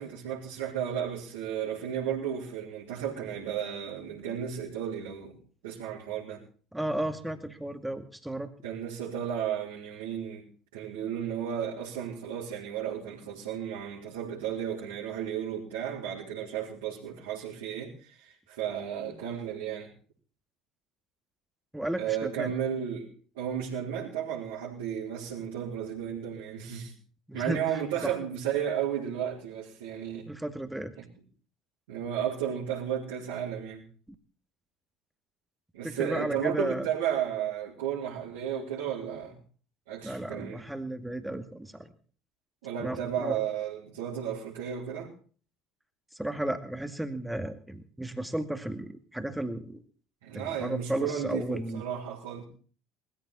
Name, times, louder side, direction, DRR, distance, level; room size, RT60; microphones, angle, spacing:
voice 1, 0.0-5.4 5.6-6.4 8.6-19.9 22.0-26.9 27.3-30.3 31.0-31.1 31.9-33.8 35.7-39.4 39.9-40.6 42.6-45.1 50.2-52.4, right 9 dB, 70° right, -7 dB, 4.3 m, -33 dB
voice 2, 6.7-8.5 21.7-22.5 27.3-27.6 28.0-28.1 30.3-30.9 35.8-36.9 40.0-41.9 42.8-43.4 46.1-49.8 50.3-51.8, right 1 dB, 5° right, 9 dB, 2.1 m, -34 dB
20.0 x 14.5 x 4.3 m, 0.42 s
figure-of-eight pair, 60°, 0 cm